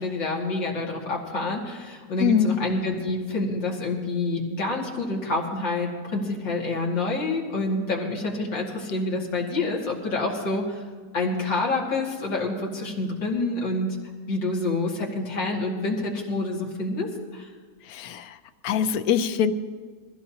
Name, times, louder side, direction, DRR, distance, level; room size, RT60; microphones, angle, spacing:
voice 1, 0.0-10.8 11.1-14.0 14.3-17.5, left 2 dB, 85° left, -2 dB, 3.0 m, -27 dB
voice 2, 2.2-2.6 17.9-18.4 18.6-19.5, left 8 dB, 65° left, 10 dB, 1.1 m, -23 dB
22.0 x 15.5 x 2.9 m, 1.5 s
omnidirectional pair, 1.9 m